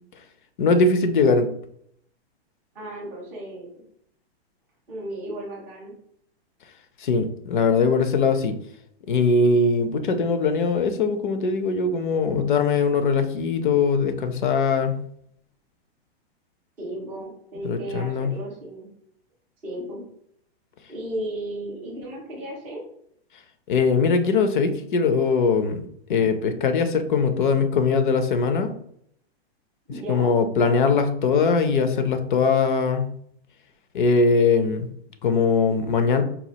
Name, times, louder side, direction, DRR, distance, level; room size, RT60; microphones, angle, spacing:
voice 1, 0.6-1.5 7.0-8.5 9.1-15.0 17.6-18.3 23.7-25.8 26.1-28.7 30.1-33.1 33.9-34.9 35.2-36.2, left 4 dB, 50° left, 8 dB, 0.5 m, -21 dB
voice 2, 2.7-3.8 4.9-5.9 16.8-18.9 19.6-20.1 20.9-22.8 29.9-30.3, right 1 dB, 5° right, -7 dB, 0.4 m, -34 dB
4.1 x 2.3 x 2.8 m, 0.68 s
hypercardioid pair, 170°, 32 cm